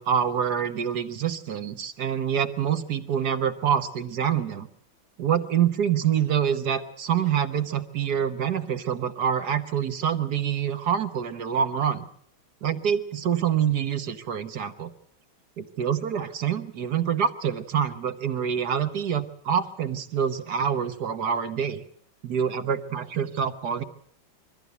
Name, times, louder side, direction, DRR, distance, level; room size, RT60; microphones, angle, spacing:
voice 1, 0.0-4.7 5.2-12.0 12.6-14.9 15.6-21.8 22.2-23.8, right 8 dB, 55° right, 9 dB, 1.5 m, -26 dB
22.5 x 14.5 x 8.0 m, 0.65 s
omnidirectional pair, 2.2 m